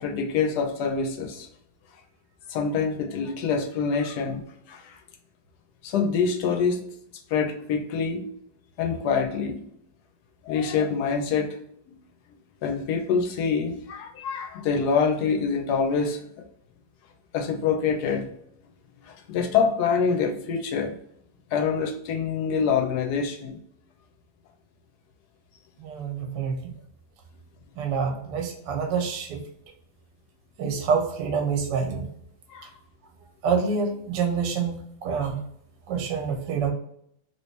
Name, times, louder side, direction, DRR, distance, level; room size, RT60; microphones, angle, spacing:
voice 1, 0.0-1.5 2.5-4.4 4.7-4.9 5.8-6.8 7.3-8.2 8.8-9.6 10.5-11.6 11.9-12.0 12.6-16.5 17.3-18.3 19.1-20.9 21.5-23.6 32.5-32.7, left 5 dB, 75° left, 4 dB, 1.1 m, -25 dB
voice 2, 25.8-26.7 27.8-29.4 30.6-32.1 33.4-35.4 35.9-36.7, right 5 dB, 85° right, 4 dB, 1.3 m, -27 dB
3.0 x 2.9 x 3.2 m, 0.70 s
omnidirectional pair, 1.8 m